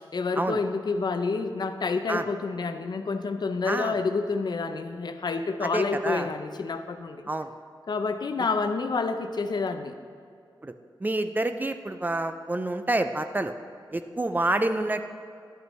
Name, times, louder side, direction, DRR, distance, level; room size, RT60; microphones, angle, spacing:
voice 1, 0.1-7.3 7.9-9.9, left 4 dB, 60° left, 8 dB, 0.5 m, -28 dB
voice 2, 5.6-6.3 7.3-7.5 10.6-10.7 11.0-13.5 13.9-15.0, right 2 dB, 20° right, 9 dB, 0.4 m, -28 dB
11.0 x 8.0 x 3.1 m, 2.4 s
wide cardioid pair, 90°, 8 cm